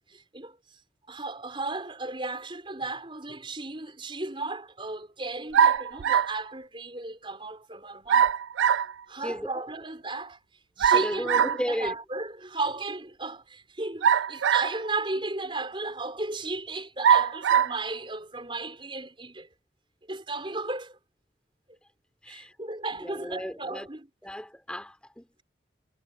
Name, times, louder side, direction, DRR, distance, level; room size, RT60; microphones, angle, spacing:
voice 1, 0.1-0.6 1.1-8.3 9.1-10.4 10.8-19.5 20.1-21.0 22.3-24.1, right 2 dB, 25° right, 4.9 m, -35 dB
sound 1, 5.5-6.4 8.1-8.9 10.8-11.6 14.0-14.9 15.6-15.7 17.0-17.8, right 8 dB, 85° right, 0.4 m, -22 dB
voice 2, 9.2-9.7 10.8-12.0 22.2-22.5 23.0-23.9 24.2-25.4, equal, 5° left, 3.5 m, -34 dB
head